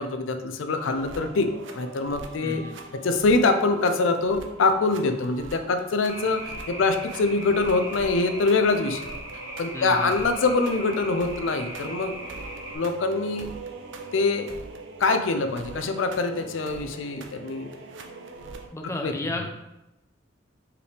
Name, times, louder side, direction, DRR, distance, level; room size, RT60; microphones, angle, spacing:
voice 1, 0.0-2.6 3.0-9.0 9.6-12.2 12.7-13.5 14.1-14.5 15.0-17.7 19.0-19.1, left 3 dB, 80° left, 7 dB, 0.5 m, -24 dB
sound 1, 0.8-18.7, right 3 dB, 70° right, 0.6 m, -42 dB
voice 2, 2.4-2.7 9.7-10.3 18.7-19.5, left 2 dB, 15° left, 2 dB, 0.5 m, -33 dB
sound 2, 6.1-12.8, right 1 dB, 15° right, 0.9 m, -39 dB
4.7 x 3.3 x 3.3 m, 0.93 s
head